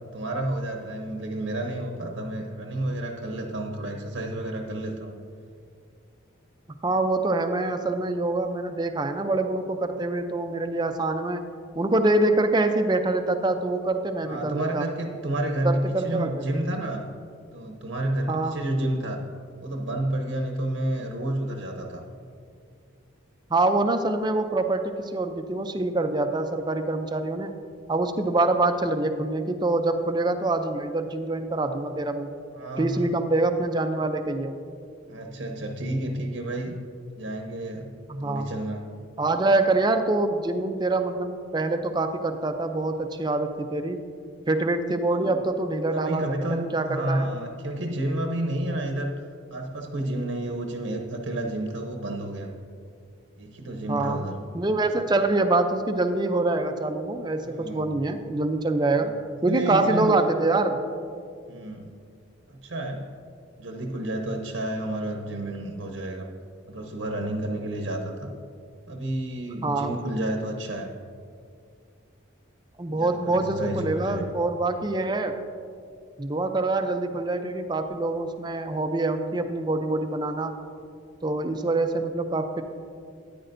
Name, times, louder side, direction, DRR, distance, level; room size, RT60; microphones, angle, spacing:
voice 1, 0.1-5.1 14.2-17.1 17.5-19.2 19.6-22.0 32.5-33.1 35.1-36.8 37.2-37.9 38.2-38.9 45.1-45.4 45.9-52.5 53.4-54.4 57.4-58.0 59.0-59.1 59.5-60.3 61.5-61.9 62.5-63.1 63.6-66.3 66.7-68.3 68.9-70.9 72.9-74.3, right 1 dB, 70° right, 2 dB, 0.8 m, -30 dB
voice 2, 6.8-11.4 11.8-14.9 15.6-16.4 18.3-18.6 23.5-27.6 27.9-32.3 32.8-34.6 38.1-38.5 39.2-44.0 44.5-47.3 53.9-54.2 54.5-59.1 59.4-60.8 69.6-69.9 72.8-75.3 76.2-80.5 81.2-82.6, right 2 dB, 20° right, 7 dB, 0.4 m, -25 dB
13.0 x 10.0 x 2.6 m, 2.3 s
head